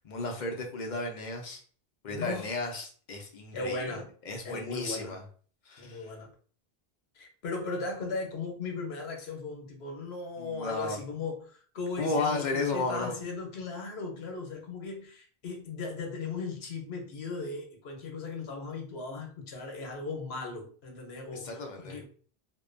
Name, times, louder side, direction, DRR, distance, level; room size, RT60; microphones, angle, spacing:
voice 1, 0.0-1.6 2.0-5.2 5.7-6.0 10.4-11.0 12.0-13.1 21.3-22.0, left 3 dB, 55° left, 0.6 m, -34 dB
voice 2, 2.1-2.5 3.5-4.1 4.4-5.2 5.8-6.3 7.1-22.0, left 3 dB, 85° left, 1.0 m, -37 dB
2.6 x 2.2 x 2.5 m
omnidirectional pair, 1.0 m